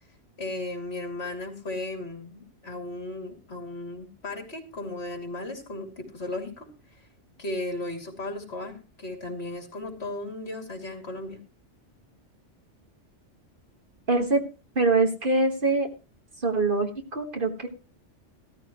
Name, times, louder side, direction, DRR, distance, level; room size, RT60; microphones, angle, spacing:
voice 1, 0.4-6.7 7.4-11.4, left 2 dB, 60° left, 3 dB, 3.0 m, -35 dB
voice 2, 14.1-14.4 14.7-15.9 16.4-17.7, right 3 dB, 45° right, 4 dB, 1.8 m, -24 dB
15.0 x 13.5 x 3.1 m, 0.31 s
omnidirectional pair, 1.2 m